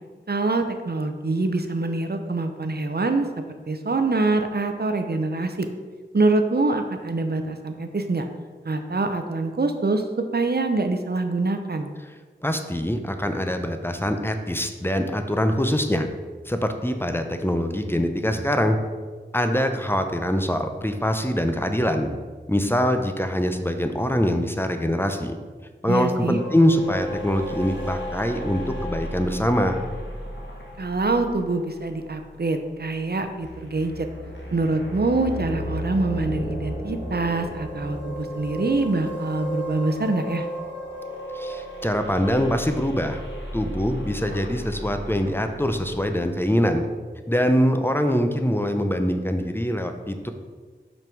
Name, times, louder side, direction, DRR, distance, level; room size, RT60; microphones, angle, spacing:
voice 1, 0.3-3.3 3.7-5.7 6.1-8.3 8.6-10.1 10.3-11.9 25.9-26.4 30.8-34.1 34.5-40.5, right 3 dB, 60° right, 6 dB, 0.7 m, -25 dB
voice 2, 12.4-16.1 16.5-18.8 19.3-22.1 22.5-25.4 25.8-29.8 41.3-43.2 43.5-46.8 47.3-50.3, equal, 10° left, 6 dB, 0.6 m, -23 dB
sound 1, 26.3-33.1 33.4-46.1, equal, 70° left, 1.5 m, -34 dB
5.8 x 5.4 x 4.5 m, 1.4 s
wide cardioid pair, 45°, 19 cm